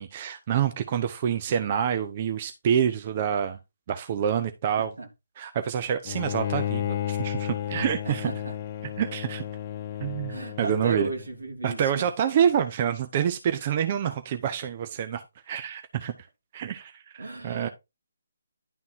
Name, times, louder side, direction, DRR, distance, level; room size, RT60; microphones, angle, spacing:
voice 1, 0.0-3.6 3.9-4.9 5.4-8.3 9.0-9.4 10.0-11.1 11.6-16.1 16.5-17.7, right 9 dB, 35° right, 0.7 m, -27 dB
voice 2, 4.8-5.1 8.0-8.6 10.3-12.4 17.2-17.7, right 3 dB, 85° right, 3.1 m, -35 dB
Bowed string instrument, 6.1-11.3, left 11 dB, 35° left, 0.4 m, -32 dB
11.0 x 3.7 x 4.1 m
figure-of-eight pair, 150°, 0 cm